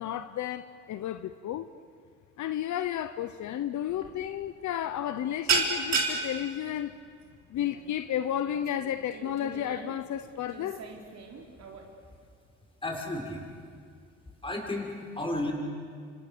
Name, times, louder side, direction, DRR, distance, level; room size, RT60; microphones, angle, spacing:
voice 1, 0.0-1.7 2.4-7.0 7.5-10.8, left 10 dB, 70° left, 0.9 m, -32 dB
sound 1, 3.9-4.1 4.4-4.7 5.0-11.9, right 4 dB, 60° right, 4.1 m, -33 dB
voice 2, 12.8-13.6 14.4-15.5, left 2 dB, 15° left, 6.3 m, -33 dB
28.5 x 26.5 x 6.9 m
cardioid pair, 90°, 30 cm